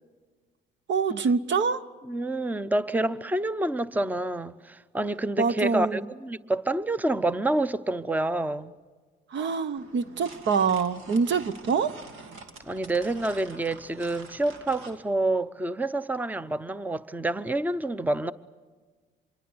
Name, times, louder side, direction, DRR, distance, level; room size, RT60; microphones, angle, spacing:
voice 1, 0.9-1.8 5.4-6.0 9.3-12.0, right 5 dB, 65° right, 1.0 m, -25 dB
voice 2, 2.1-8.7 12.6-18.3, right 2 dB, 10° right, 0.7 m, -28 dB
sound 1, 9.8-15.0, right 3 dB, 85° right, 2.3 m, -46 dB
25.5 x 23.0 x 8.0 m
cardioid pair, 90°, 20 cm